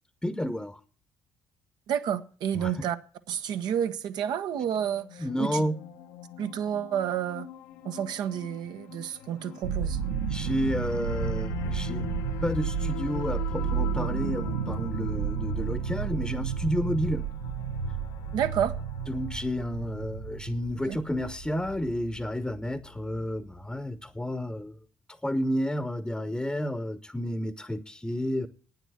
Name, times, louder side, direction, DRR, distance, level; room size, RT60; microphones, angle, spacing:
voice 1, 0.2-0.8 2.6-2.7 5.2-5.8 10.3-12.1 12.4-17.2 19.1-24.7 25.2-28.5, equal, 10° left, 1.0 m, -31 dB
voice 2, 1.9-3.0 3.3-5.6 6.4-7.5 7.8-10.0 18.3-18.7 20.9-21.0, right 9 dB, 65° right, 1.0 m, -30 dB
sound 1, 4.6-20.0, left 10 dB, 75° left, 1.2 m, -43 dB
sound 2, 9.6-23.6, right 6 dB, 90° right, 1.3 m, -32 dB
9.3 x 8.0 x 9.4 m
hypercardioid pair, 55°, 8 cm